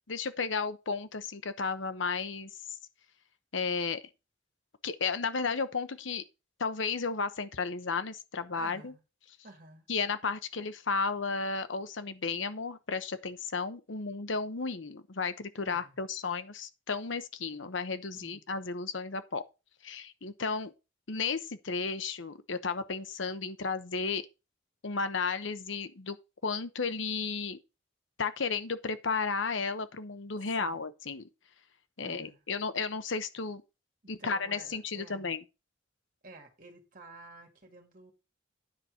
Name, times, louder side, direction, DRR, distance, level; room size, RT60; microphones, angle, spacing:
voice 1, 0.1-2.5 3.5-4.0 4.8-6.2 6.6-8.9 9.9-19.4 19.8-20.7 21.1-24.2 24.8-26.2 26.4-27.6 28.2-31.3 32.0-33.6 34.1-35.4, left 4 dB, 75° left, 0.9 m, -33 dB
voice 2, 8.6-9.0 9.4-9.9 15.6-16.0 18.2-18.4 21.1-21.3 30.5-30.8 32.0-32.4 34.0-35.3 36.2-38.1, right 2 dB, 45° right, 2.5 m, -52 dB
9.7 x 4.4 x 6.3 m
head